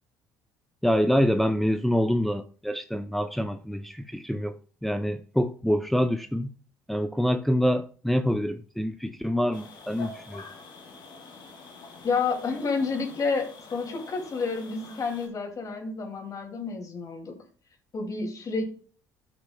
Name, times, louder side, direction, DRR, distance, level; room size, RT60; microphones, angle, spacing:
voice 1, 0.8-4.6 4.8-6.5 6.9-10.4, equal, ahead, 0.5 m, -26 dB
sound 1, 9.5-15.3, left 3 dB, 60° left, 2.3 m, -46 dB
voice 2, 12.0-17.3 17.9-18.7, left 4 dB, 45° left, 2.4 m, -30 dB
12.5 x 5.9 x 2.2 m
hypercardioid pair, 70°, 8 cm